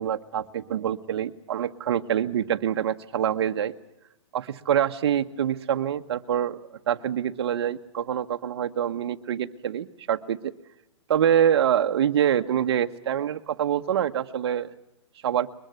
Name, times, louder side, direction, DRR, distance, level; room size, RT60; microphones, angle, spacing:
voice 1, 0.0-3.7 4.3-10.5 11.1-14.7 15.2-15.5, right 9 dB, 55° right, 7 dB, 1.4 m, -25 dB
22.5 x 21.0 x 8.1 m, 0.89 s
hypercardioid pair, 165°, 16 cm